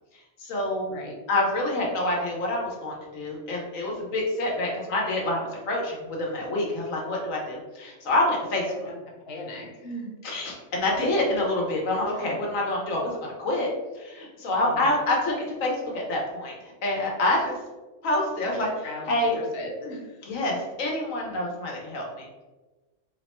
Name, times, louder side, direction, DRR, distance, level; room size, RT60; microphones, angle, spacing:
voice 1, 0.4-1.0 1.3-8.7 10.2-13.7 13.9-17.6 18.0-19.3 20.3-22.3, left 1 dB, 85° left, -2 dB, 1.3 m, -27 dB
voice 2, 8.7-9.0 9.3-10.2 12.1-12.2 14.6-14.9 18.8-20.3, left 1 dB, 55° left, -1 dB, 0.9 m, -38 dB
3.5 x 2.2 x 4.2 m, 1.2 s
omnidirectional pair, 1.3 m